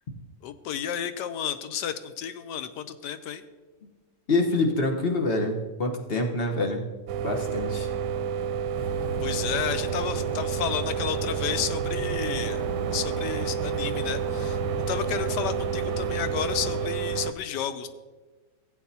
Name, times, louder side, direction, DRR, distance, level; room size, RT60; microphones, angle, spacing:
voice 1, 0.4-3.4 9.2-17.9, left 9 dB, 85° left, 11 dB, 1.3 m, -32 dB
voice 2, 4.3-6.8 7.2-7.9, left 2 dB, 40° left, 2 dB, 1.2 m, -26 dB
sound 1, 7.1-17.3, right 7 dB, 85° right, 1.2 m, -30 dB
sound 2, 8.8-16.8, right 3 dB, 15° right, 1.5 m, -35 dB
16.0 x 8.1 x 2.8 m, 1.3 s
omnidirectional pair, 1.8 m